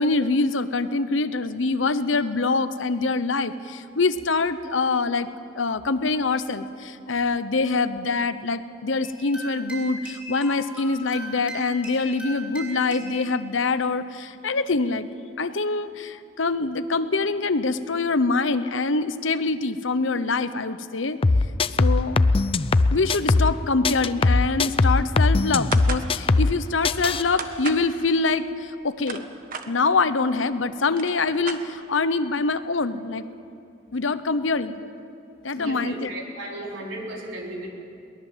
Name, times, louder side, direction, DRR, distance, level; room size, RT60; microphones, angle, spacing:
voice 1, 0.0-5.3 5.6-15.1 15.4-21.2 21.8-22.2 22.9-29.2 29.7-33.3 33.9-34.8 35.4-36.1, left 3 dB, 85° left, 13 dB, 0.9 m, -24 dB
sound 1, 9.0-13.2, right 1 dB, 10° right, 6.5 m, -38 dB
sound 2, 21.2-23.6 23.8-26.6 26.8-27.2, left 3 dB, 30° left, 0.5 m, -20 dB
sound 3, 25.7-26.1 27.4-27.9 28.8-29.7 30.5-30.6 30.8-32.0, right 5 dB, 50° right, 1.4 m, -34 dB
voice 2, 35.5-37.7, right 1 dB, 85° right, -1 dB, 4.2 m, -35 dB
22.5 x 19.0 x 7.4 m, 2.5 s
head